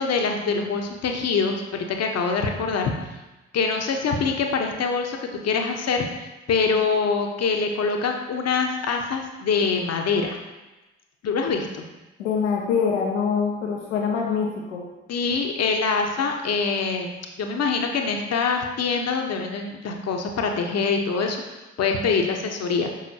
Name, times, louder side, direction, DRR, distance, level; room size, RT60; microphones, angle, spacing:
voice 1, 0.0-2.9 3.5-10.4 11.2-11.9 15.1-17.1 17.4-21.4 21.8-22.9, left 5 dB, 45° left, 3 dB, 1.0 m, -24 dB
voice 2, 12.2-14.8, left 6 dB, 80° left, 0 dB, 0.9 m, -24 dB
6.5 x 5.9 x 2.9 m, 1.1 s
figure-of-eight pair, 40°, 34 cm